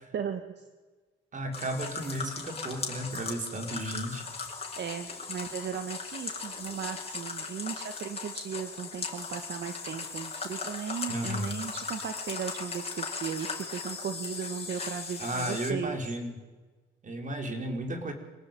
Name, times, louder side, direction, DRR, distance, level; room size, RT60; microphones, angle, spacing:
voice 1, 0.1-0.7 4.8-16.0, right 7 dB, 60° right, 8 dB, 1.9 m, -36 dB
voice 2, 1.3-4.3 11.1-11.6 15.2-16.4 17.0-18.1, right 1 dB, 40° right, 5 dB, 4.9 m, -34 dB
sound 1, 1.5-15.7, left 4 dB, 30° left, 5.9 m, -38 dB
26.5 x 18.5 x 9.3 m, 1.3 s
cardioid pair, 90°, 20 cm